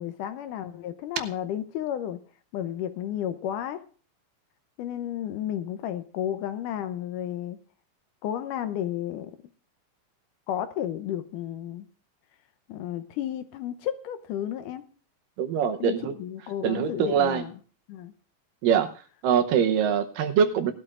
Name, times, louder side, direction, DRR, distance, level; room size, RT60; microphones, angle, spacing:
voice 1, 0.0-2.2 2.5-3.8 4.8-7.6 8.2-9.3 10.5-11.9 12.7-14.8 15.8-17.6 17.9-18.1, left 11 dB, 75° left, 10 dB, 2.1 m, -32 dB
voice 2, 15.4-16.1 16.6-17.4 18.6-18.9 19.2-20.7, right 7 dB, 75° right, 6 dB, 2.5 m, -23 dB
19.5 x 12.0 x 2.5 m, 0.39 s
omnidirectional pair, 4.0 m